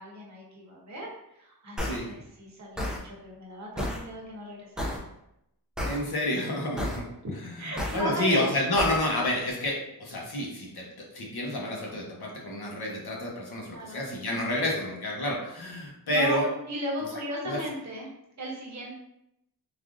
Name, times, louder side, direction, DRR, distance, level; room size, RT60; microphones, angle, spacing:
voice 1, 0.0-5.0 7.6-8.6 13.6-14.0 16.1-18.1 18.4-18.9, equal, 50° right, -3 dB, 0.8 m, -36 dB
sound 1, 1.8-2.0 2.8-3.0 3.8-4.0 4.8-5.0 5.8-6.0 6.8-7.0 7.8-8.0 8.8-9.0, left 1 dB, ahead, 0.3 m, -30 dB
voice 2, 5.9-7.1 7.9-16.5 17.4-17.6, left 1 dB, 80° left, -2 dB, 0.9 m, -29 dB
3.3 x 2.4 x 2.5 m, 0.81 s
wide cardioid pair, 160°, 37 cm